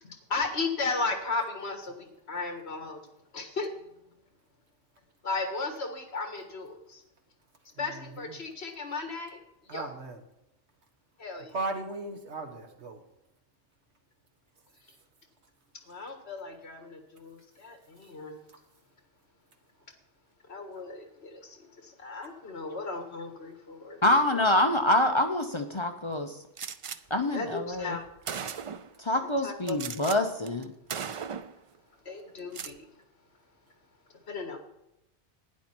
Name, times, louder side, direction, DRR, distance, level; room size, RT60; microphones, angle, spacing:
voice 1, 0.0-3.0 3.3-3.7 5.2-7.0 7.8-9.4 9.7-9.9 11.2-11.6 15.9-18.4 20.5-24.5 27.3-28.0 29.1-29.8 32.1-32.9 34.3-34.6, left 3 dB, 70° left, 5 dB, 1.9 m, -35 dB
voice 2, 7.7-8.3 9.7-10.2 11.5-13.0, right 2 dB, 75° right, 4 dB, 1.8 m, -37 dB
voice 3, 24.0-26.3 27.1-28.0 29.0-30.7, left 1 dB, 30° left, 5 dB, 0.7 m, -26 dB
Gunshot gunfire, 26.6-27.0 27.8-27.9 28.3-28.9 29.7-30.2 30.5-30.6 30.9-31.6 32.4-32.8, right 7 dB, 60° right, 0.3 m, -37 dB
11.5 x 9.8 x 4.5 m, 0.85 s
omnidirectional pair, 1.1 m